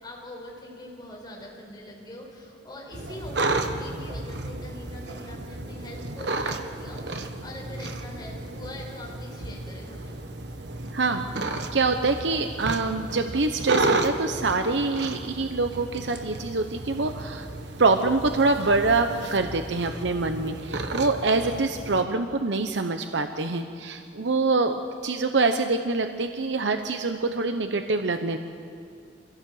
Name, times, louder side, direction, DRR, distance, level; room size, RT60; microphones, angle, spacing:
voice 1, 0.0-10.1, left 1 dB, 25° left, -1 dB, 4.8 m, -43 dB
sound 1, 2.9-22.0, right 2 dB, 70° right, 1.4 m, -33 dB
voice 2, 10.9-17.5 17.8-28.4, right 3 dB, 90° right, 7 dB, 0.9 m, -25 dB
25.5 x 16.5 x 7.8 m, 2.4 s
head